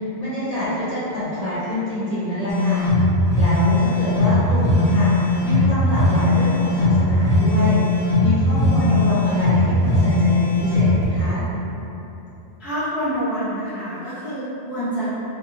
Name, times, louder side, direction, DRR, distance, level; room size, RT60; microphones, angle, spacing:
voice 1, 0.0-2.8 3.4-11.4, left 1 dB, 45° left, -10 dB, 0.6 m, -27 dB
sound 1, 2.5-11.0, left 2 dB, 80° left, 0.9 m, -18 dB
voice 2, 12.6-15.1, equal, ahead, -11 dB, 0.4 m, -27 dB
2.7 x 2.2 x 2.8 m, 3.0 s
omnidirectional pair, 1.1 m